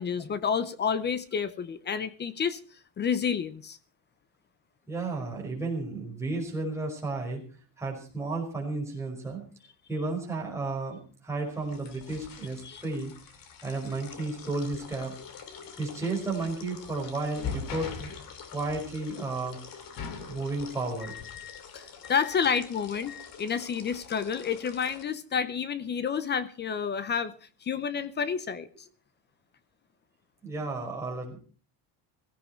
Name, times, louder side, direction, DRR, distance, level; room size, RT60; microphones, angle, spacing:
voice 1, 0.0-2.6 3.0-3.8 12.6-12.8 21.1-27.3 27.6-28.7, left 7 dB, 25° left, 0.7 m, -30 dB
voice 2, 4.9-7.4 7.8-9.4 9.9-13.1 13.6-15.2 15.8-18.1 18.5-19.6 20.3-21.1 30.4-31.4, right 3 dB, 5° right, 5.4 m, -33 dB
sound 1, 11.5-25.0, left 6 dB, 45° left, 2.6 m, -43 dB
17.0 x 16.0 x 4.5 m
cardioid pair, 165°, 46 cm